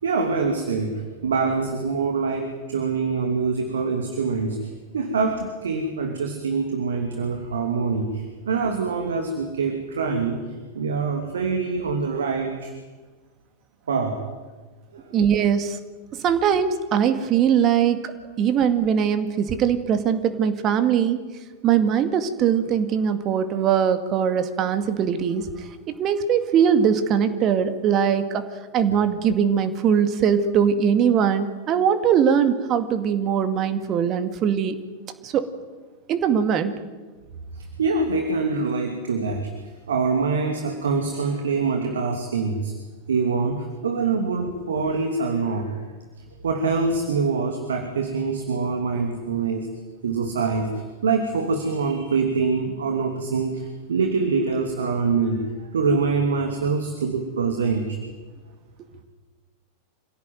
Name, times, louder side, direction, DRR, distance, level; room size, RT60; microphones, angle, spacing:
voice 1, 0.0-0.9 1.2-4.7 4.9-10.4 10.7-12.7 13.9-14.2 14.9-15.0 37.6-39.5 39.9-42.7 43.1-45.8 46.4-49.7 50.0-58.0, right 4 dB, 65° right, 4 dB, 2.8 m, -24 dB
voice 2, 15.1-15.8 16.2-21.2 21.6-25.7 26.0-28.5 28.7-34.8 35.2-35.5 36.1-36.7, right 8 dB, 35° right, 9 dB, 2.2 m, -21 dB
26.5 x 17.0 x 9.4 m, 1.3 s
figure-of-eight pair, 90°, 0 cm